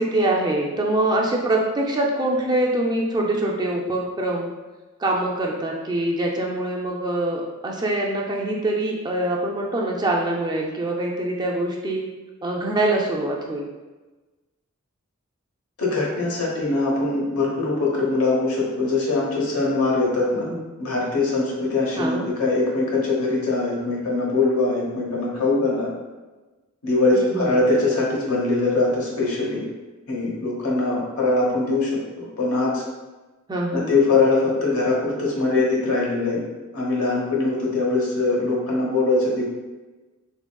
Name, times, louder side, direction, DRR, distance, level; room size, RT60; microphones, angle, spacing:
voice 1, 0.0-4.5 5.0-12.0 12.4-13.6 20.4-20.6 22.0-22.3 27.1-27.5 33.5-33.9, right 1 dB, 20° right, -1 dB, 0.4 m, -24 dB
voice 2, 15.8-20.5 20.8-25.9 26.8-29.6 30.1-31.9 32.2-32.8 33.7-36.4 36.7-39.4, left 3 dB, 75° left, -4 dB, 1.0 m, -22 dB
3.6 x 3.2 x 2.2 m, 1.2 s
head